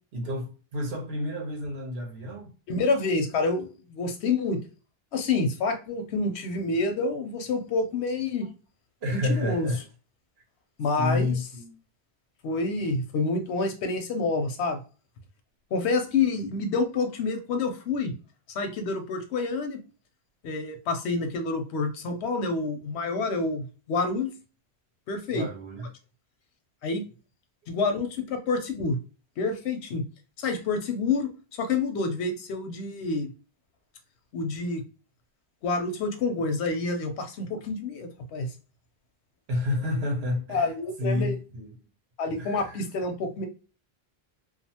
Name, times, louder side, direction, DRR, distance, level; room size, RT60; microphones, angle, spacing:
voice 1, 0.1-2.5 9.0-9.9 11.0-11.8 25.3-25.9 39.5-40.7 41.0-41.7 42.4-42.8, left 2 dB, 75° right, 1.1 m, -30 dB
voice 2, 2.7-4.6 5.1-8.5 9.3-9.7 10.8-11.3 12.4-14.8 15.7-18.1 18.5-19.8 20.4-24.3 25.1-25.5 26.8-27.0 27.7-29.0 29.4-30.0 30.4-31.3 31.6-33.3 34.3-34.8 35.6-38.5 40.5-41.3 42.2-43.5, left 3 dB, 90° left, 0.9 m, -28 dB
2.4 x 2.4 x 2.7 m
omnidirectional pair, 1.1 m